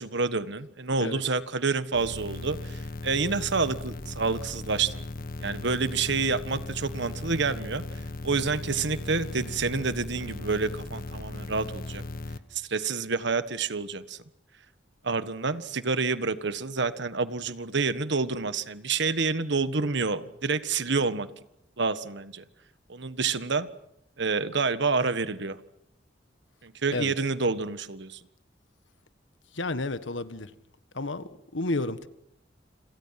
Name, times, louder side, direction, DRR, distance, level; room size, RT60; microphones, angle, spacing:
voice 1, 0.0-5.0 5.4-7.8 8.2-12.0 12.5-14.2 15.0-21.3 21.8-22.4 22.9-23.7 24.2-25.6 26.6-28.2, right 4 dB, 65° right, 12 dB, 1.5 m, -28 dB
sound 1, 1.9-12.4, left 2 dB, 50° left, 1.4 m, -37 dB
voice 2, 29.5-30.5 30.9-32.1, left 2 dB, 75° left, 12 dB, 1.6 m, -31 dB
29.0 x 27.5 x 5.9 m, 0.78 s
head